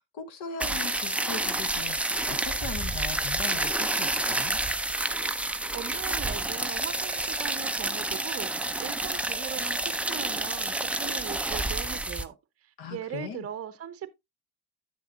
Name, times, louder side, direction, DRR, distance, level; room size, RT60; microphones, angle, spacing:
voice 1, 0.1-4.6 12.8-13.5, left 5 dB, 50° left, 1.3 m, -39 dB
sound 1, 0.6-12.2, right 2 dB, 5° right, 0.4 m, -29 dB
voice 2, 5.7-12.4 12.6-14.1, right 9 dB, 30° right, 0.8 m, -39 dB
9.9 x 6.9 x 2.5 m
figure-of-eight pair, 55°, 49 cm